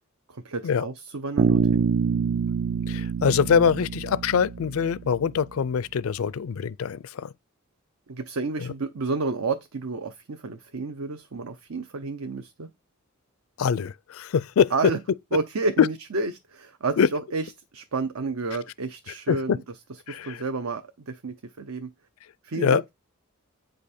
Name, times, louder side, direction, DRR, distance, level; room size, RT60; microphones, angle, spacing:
voice 1, 0.3-1.9 8.1-12.7 14.7-15.0 15.3-17.5 17.7-19.6 20.1-21.9 22.4-22.9, right 3 dB, 70° right, 0.7 m, -30 dB
Bass guitar, 1.4-5.3, right 5 dB, 40° right, 0.3 m, -26 dB
voice 2, 2.9-7.3 8.6-8.7 13.6-14.7 15.8-15.9 17.0-17.1 19.3-19.6 20.1-20.4 22.5-22.8, left 7 dB, 70° left, 0.4 m, -23 dB
8.7 x 5.2 x 4.3 m
head